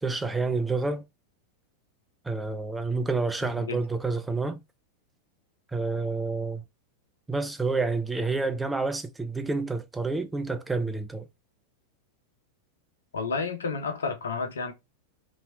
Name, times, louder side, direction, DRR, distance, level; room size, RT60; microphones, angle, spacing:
voice 1, 0.0-1.0 2.2-4.6 5.7-6.6 7.3-11.3, right 3 dB, 10° right, 0.5 m, -29 dB
voice 2, 3.4-3.8 13.1-14.7, left 4 dB, 70° left, 0.7 m, -31 dB
3.0 x 2.7 x 2.7 m
figure-of-eight pair, 90°, 0 cm